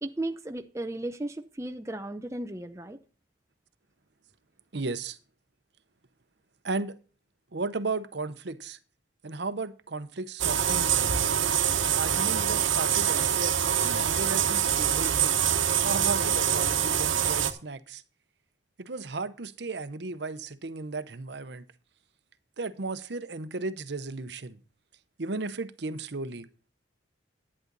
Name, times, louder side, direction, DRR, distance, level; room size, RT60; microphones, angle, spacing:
voice 1, 0.0-3.0, right 1 dB, 15° right, 0.6 m, -35 dB
voice 2, 4.7-5.2 6.6-7.0 7.5-8.8 9.2-11.1 12.0-15.3 15.8-18.0 18.8-21.6 22.6-24.6 25.2-26.5, right 3 dB, 60° right, 0.8 m, -35 dB
sound 1, 10.4-17.5, right 9 dB, 85° right, 1.1 m, -25 dB
11.0 x 9.8 x 3.9 m
head